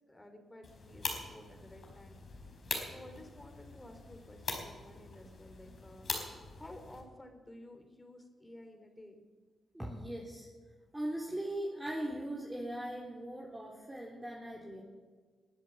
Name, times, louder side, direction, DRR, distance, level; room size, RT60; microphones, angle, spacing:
voice 1, 0.1-2.2 2.8-6.1 6.5-9.2, left 1 dB, 20° left, 5 dB, 3.6 m, -53 dB
sound 1, 0.6-7.0, left 3 dB, 55° left, 4.2 m, -43 dB
voice 2, 9.7-10.5 10.9-14.8, right 1 dB, 15° right, -3 dB, 3.4 m, -39 dB
21.0 x 8.2 x 7.5 m, 1.4 s
hypercardioid pair, 45°, 0 cm